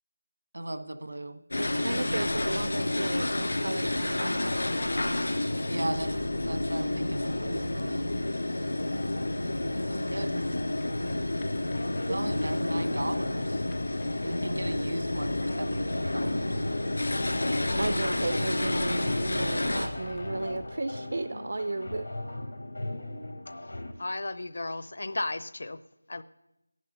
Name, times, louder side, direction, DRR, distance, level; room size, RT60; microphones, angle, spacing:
voice 1, 0.5-1.4 5.7-6.1 6.5-8.1 9.9-10.4 12.1-13.6 14.2-16.6, right 1 dB, 75° right, 10 dB, 1.2 m, -36 dB
sound 1, 1.5-19.9, left 1 dB, 75° left, 2.8 m, -30 dB
voice 2, 1.6-4.4 12.1-12.3 17.8-22.1, right 2 dB, 50° right, 12 dB, 0.4 m, -34 dB
sound 2, 5.9-20.7, left 2 dB, 15° left, 0.4 m, -44 dB
sound 3, 8.9-23.9, left 1 dB, 90° left, 3.1 m, -40 dB
voice 3, 24.0-25.8 26.1-26.2, left 2 dB, 50° left, 14 dB, 0.7 m, -34 dB
15.0 x 10.5 x 5.3 m, 0.90 s
figure-of-eight pair, 180°, 0 cm